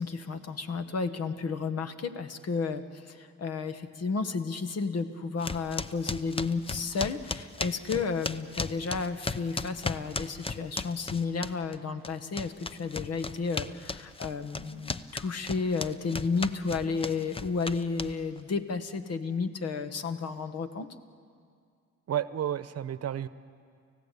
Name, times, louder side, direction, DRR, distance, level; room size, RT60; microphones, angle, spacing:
voice 1, 0.0-20.9, left 4 dB, 55° left, 10 dB, 1.5 m, -32 dB
sound 1, 5.4-11.8 12.0-18.4, left 3 dB, 20° left, 0.7 m, -35 dB
voice 2, 22.1-23.3, right 10 dB, 55° right, 14 dB, 0.9 m, -31 dB
29.5 x 15.5 x 8.4 m, 2.2 s
cardioid pair, 90°, 30 cm